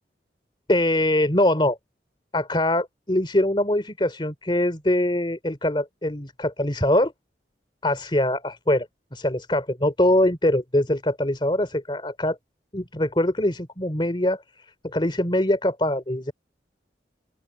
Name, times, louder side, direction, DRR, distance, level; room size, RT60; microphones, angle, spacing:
voice 1, 0.7-1.8 2.3-7.1 7.8-8.8 9.1-12.4 12.7-14.4 14.8-16.3, left 1 dB, 30° left, 2.9 m, -23 dB
open air
head